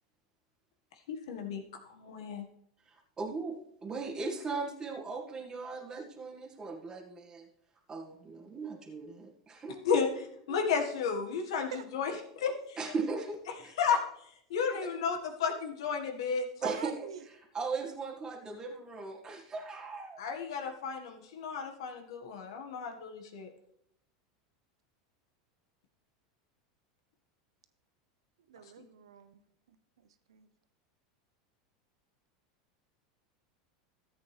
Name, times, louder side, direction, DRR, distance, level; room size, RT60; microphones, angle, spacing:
voice 1, 1.1-2.5 9.9-10.1 10.5-12.8 13.8-14.0 14.5-16.5 20.2-23.5 28.8-28.9, left 6 dB, 75° left, 4 dB, 1.8 m, -33 dB
voice 2, 2.8-7.5 7.9-9.9 12.8-13.7 16.6-20.2, right 4 dB, 25° right, -1 dB, 1.9 m, -38 dB
voice 3, 16.6-17.2 28.5-29.4 29.7-29.8 30.3-30.5, right 8 dB, 85° right, 11 dB, 0.9 m, -43 dB
13.5 x 8.5 x 3.5 m, 0.73 s
hypercardioid pair, 100°, 3 cm